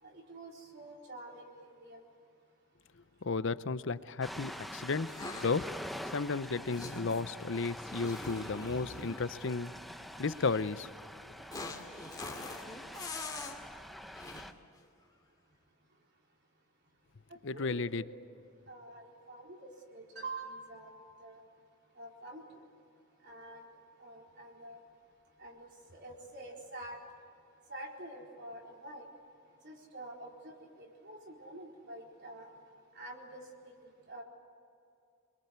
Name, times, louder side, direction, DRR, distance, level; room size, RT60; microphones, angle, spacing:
voice 1, 0.0-2.0 17.5-18.0 18.7-20.9 21.2-21.4 22.0-22.6 23.2-23.7 24.0-24.8 25.4-27.0 27.7-29.1 29.6-32.5 32.9-33.5 33.8-34.2, right 2 dB, 55° right, -1 dB, 4.3 m, -47 dB
voice 2, 3.2-5.1 5.4-9.7 10.2-10.9 17.4-18.0, left 4 dB, 60° left, 15 dB, 0.7 m, -33 dB
Ocean, 4.2-14.5, equal, ahead, 0.7 m, -46 dB
sound 1, 5.1-5.9 6.7-7.3 7.8-9.3 10.3-10.6 11.5-13.6 14.1-14.5, left 3 dB, 20° left, 2.4 m, -44 dB
27.5 x 22.0 x 8.2 m, 2.4 s
head